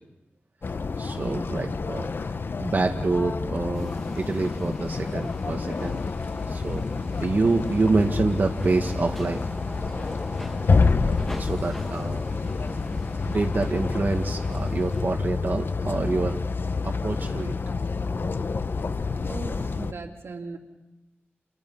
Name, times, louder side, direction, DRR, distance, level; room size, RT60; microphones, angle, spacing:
sound 1, 0.6-19.9, left 4 dB, 55° left, 0.8 m, -28 dB
voice 1, 1.0-6.0 6.5-6.8 7.2-9.4 11.0-11.1 11.4-12.3 13.2-16.4 16.8-17.5, right 3 dB, 50° right, 2 dB, 1.7 m, -27 dB
sound 2, 3.7-15.0, equal, 5° left, 1.5 m, -42 dB
voice 2, 19.2-20.6, right 3 dB, 80° right, 1 dB, 3.0 m, -38 dB
29.0 x 28.5 x 5.5 m, 1.1 s
wide cardioid pair, 110°, 4 cm